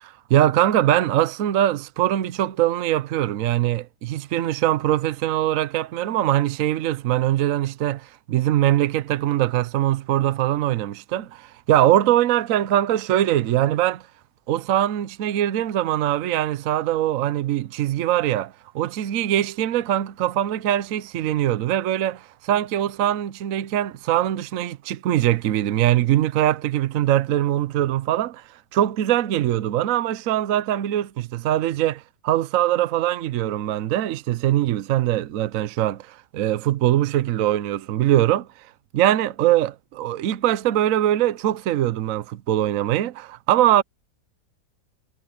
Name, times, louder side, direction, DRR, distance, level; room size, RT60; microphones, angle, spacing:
voice 1, 0.3-14.0 14.5-28.4 28.7-38.5 38.9-43.8, right 12 dB, 65° right, 0.9 m, -22 dB
omnidirectional pair, 1.9 m